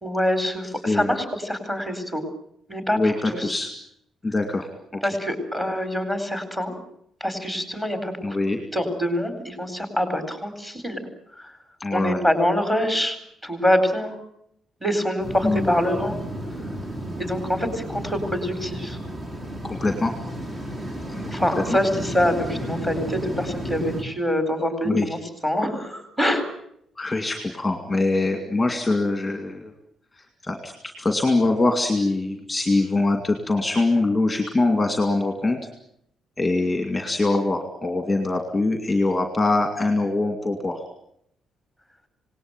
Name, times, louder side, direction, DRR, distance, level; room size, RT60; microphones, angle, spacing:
voice 1, 0.0-2.2 2.7-3.6 5.0-6.8 7.2-8.4 8.7-11.0 11.4-11.5 11.9-13.2 13.4-14.2 14.8-16.2 17.2-19.0 21.3-26.5, equal, 10° right, 7 dB, 4.2 m, -25 dB
voice 2, 3.0-3.7 4.2-4.7 8.2-8.6 11.8-12.2 15.4-15.7 19.6-20.1 21.1-21.3 24.8-25.1 27.0-29.7 30.1-35.6 36.4-40.8, left 2 dB, 10° left, 5 dB, 2.2 m, -23 dB
sound 1, 15.2-24.0, right 1 dB, 35° right, 4.0 m, -33 dB
27.0 x 19.0 x 9.0 m, 0.74 s
cardioid pair, 180°, 0 cm